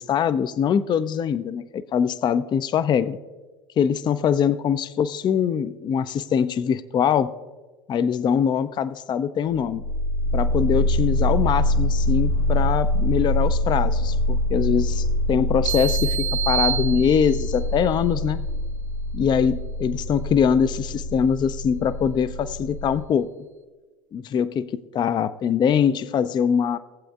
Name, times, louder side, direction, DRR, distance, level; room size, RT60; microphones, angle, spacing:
voice 1, 0.0-3.2 3.8-7.3 7.9-9.8 10.3-18.4 19.1-23.3 24.1-26.8, left 7 dB, 30° left, 14 dB, 0.4 m, -23 dB
sound 1, 9.7-23.0, left 1 dB, 75° left, 1.7 m, -24 dB
sound 2, 15.7-17.6, right 11 dB, 60° right, 0.5 m, -28 dB
18.0 x 7.8 x 2.3 m, 1.2 s
hypercardioid pair, 75°, 16 cm